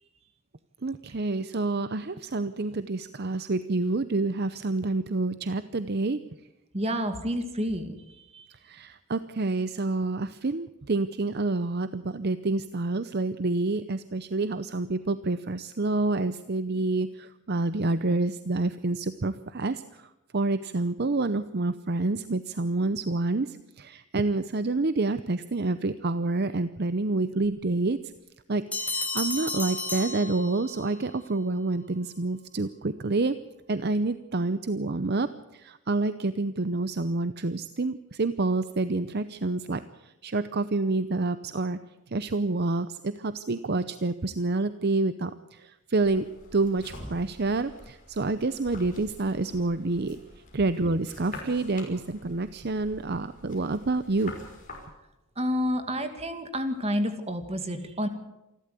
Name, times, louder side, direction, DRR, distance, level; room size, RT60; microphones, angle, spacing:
voice 1, 0.8-6.2 8.6-19.8 20.3-28.0 28.5-28.6 28.9-33.3 33.7-39.8 40.2-41.8 42.1-50.2 50.5-54.3, right 2 dB, 50° right, 12 dB, 0.7 m, -28 dB
voice 2, 6.7-7.9 8.3-8.4 55.4-58.1, equal, 30° right, 7 dB, 2.3 m, -29 dB
sound 1, 28.7-31.0, left 2 dB, 5° left, 4.3 m, -32 dB
sound 2, 46.0-54.9, left 2 dB, 40° left, 5.6 m, -46 dB
28.0 x 12.5 x 8.3 m, 0.97 s
head